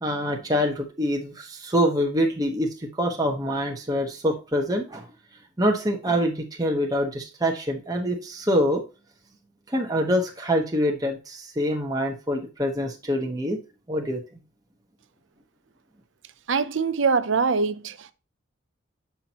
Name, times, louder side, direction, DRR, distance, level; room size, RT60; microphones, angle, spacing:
voice 1, 0.0-5.1 5.6-8.8 9.7-13.6 13.9-14.2, equal, 20° right, 1.1 m, -25 dB
voice 2, 16.5-18.1, right 5 dB, 85° right, 0.6 m, -23 dB
8.3 x 5.9 x 3.0 m
head